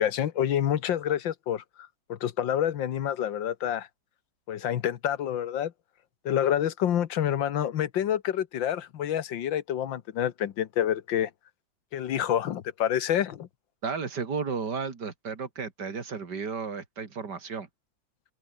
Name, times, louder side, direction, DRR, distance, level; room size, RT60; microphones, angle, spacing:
voice 1, 0.0-1.6 2.1-3.9 4.5-5.7 6.3-11.3 11.9-13.5, left 10 dB, 80° left, 1.8 m, -27 dB
voice 2, 13.8-17.7, right 5 dB, 60° right, 2.9 m, -33 dB
omnidirectional pair, 2.0 m